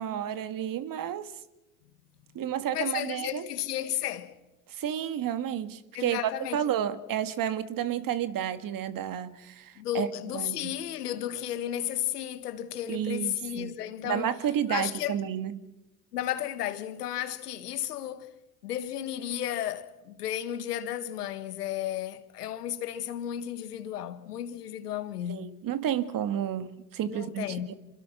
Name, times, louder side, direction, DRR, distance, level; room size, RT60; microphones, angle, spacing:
voice 1, 0.0-1.3 2.4-3.5 4.7-10.7 12.9-13.7 14.0-15.6 25.3-27.8, right 10 dB, 45° right, 1.9 m, -31 dB
voice 2, 2.7-4.3 5.9-6.6 9.8-14.3 14.7-15.2 16.1-18.3 18.6-25.5 27.1-27.7, left 11 dB, 85° left, 1.8 m, -33 dB
26.5 x 24.0 x 6.0 m
hypercardioid pair, 75°, 46 cm